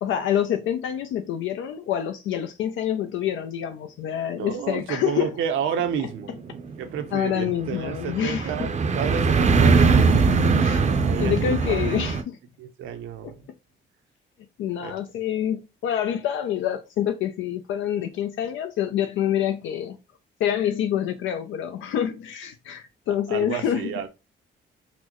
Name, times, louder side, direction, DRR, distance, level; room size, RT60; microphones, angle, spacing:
voice 1, 0.0-5.3 7.1-8.7 10.4-10.8 11.2-12.4 14.6-20.0 20.4-23.9, left 10 dB, 75° left, 0.4 m, -27 dB
voice 2, 4.3-6.3 6.8-10.5 11.0-12.0 12.6-13.3 14.8-14.9 23.1-24.1, right 8 dB, 80° right, 0.6 m, -31 dB
sound 1, 6.0-12.2, right 4 dB, 35° right, 0.5 m, -21 dB
4.0 x 2.1 x 2.9 m
cardioid pair, 90°, 20 cm